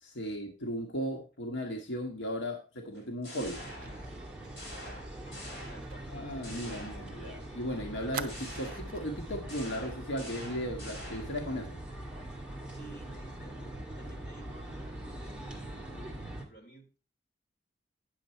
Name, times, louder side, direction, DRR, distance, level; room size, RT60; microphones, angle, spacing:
voice 1, 0.0-3.6 6.1-11.8, equal, 85° left, 2 dB, 1.3 m, -36 dB
sound 1, 2.9-4.2 4.6-6.1 6.4-7.5 8.3-11.5, left 1 dB, 60° left, 6.0 m, -47 dB
sound 2, 3.4-16.5, right 1 dB, 5° right, 1.7 m, -43 dB
Fire, 3.8-7.3 7.5-7.6 8.1-9.1 9.5-9.7 10.0-10.2, right 6 dB, 50° right, 0.6 m, -46 dB
voice 2, 4.8-6.1 12.7-17.1, right 2 dB, 45° left, -1 dB, 3.1 m, -54 dB
9.5 x 6.7 x 4.3 m, 0.36 s
head